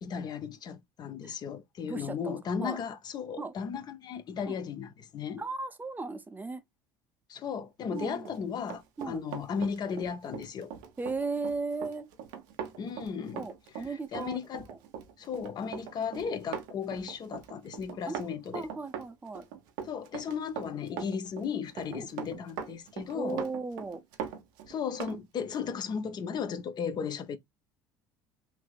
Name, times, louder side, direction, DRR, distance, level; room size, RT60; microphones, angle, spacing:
voice 1, 0.0-5.4 7.3-10.7 12.8-13.5 13.8-14.7 15.2-18.7 19.9-23.4 24.7-27.4, left 6 dB, 45° left, 0.5 m, -35 dB
voice 2, 1.8-2.8 3.4-3.5 4.5-4.6 5.4-6.6 7.9-8.3 9.0-9.2 11.0-12.1 13.3-14.4 14.7-14.8 18.1-18.2 18.5-19.4 21.9-22.1 23.1-24.0, right 3 dB, 15° right, 0.5 m, -36 dB
Run, 8.1-25.2 25.5-25.7, right 8 dB, 80° right, 0.7 m, -41 dB
3.3 x 2.6 x 2.3 m
supercardioid pair, 85°, 10 cm